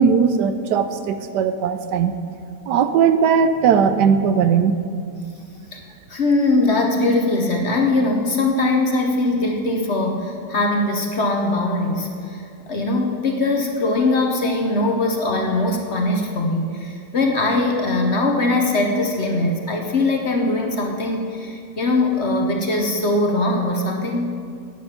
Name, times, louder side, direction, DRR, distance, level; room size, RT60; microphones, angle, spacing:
voice 1, 0.0-2.1 2.7-4.8, right 6 dB, 80° right, 10 dB, 1.2 m, -18 dB
voice 2, 6.1-24.3, left 2 dB, 45° left, 2 dB, 1.1 m, -21 dB
10.5 x 9.4 x 5.8 m, 2.3 s
omnidirectional pair, 1.8 m